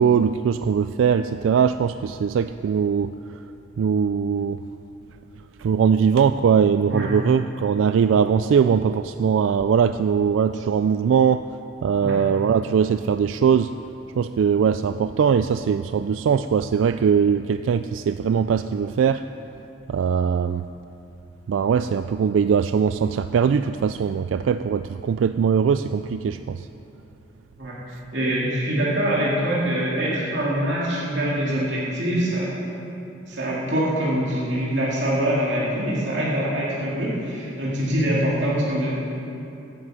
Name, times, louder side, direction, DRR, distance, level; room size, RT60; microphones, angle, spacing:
voice 1, 0.0-3.1 3.8-4.6 5.6-11.5 11.8-13.7 14.2-19.2 19.9-20.7 21.5-26.7, right 7 dB, 90° right, 11 dB, 0.3 m, -21 dB
voice 2, 28.1-32.6 33.3-38.9, right 1 dB, 70° right, -6 dB, 2.5 m, -24 dB
15.5 x 11.0 x 4.9 m, 2.8 s
head